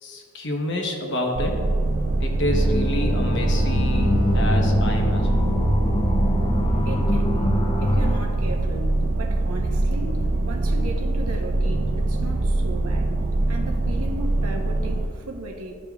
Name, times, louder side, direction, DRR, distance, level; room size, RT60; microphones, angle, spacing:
voice 1, 0.0-1.6 2.2-5.4, left 1 dB, 55° left, 1 dB, 1.0 m, -28 dB
sound 1, 1.3-15.1, right 2 dB, 45° right, 0.4 m, -23 dB
Bowed string instrument, 1.9-6.0, left 1 dB, 20° right, 0.8 m, -34 dB
sound 2, 2.5-8.2, left 1 dB, 20° left, 0.5 m, -24 dB
voice 2, 6.9-7.5 7.8-13.2 13.5-15.7, right 1 dB, 75° right, 2 dB, 0.8 m, -36 dB
12.0 x 5.1 x 2.3 m, 2.3 s
head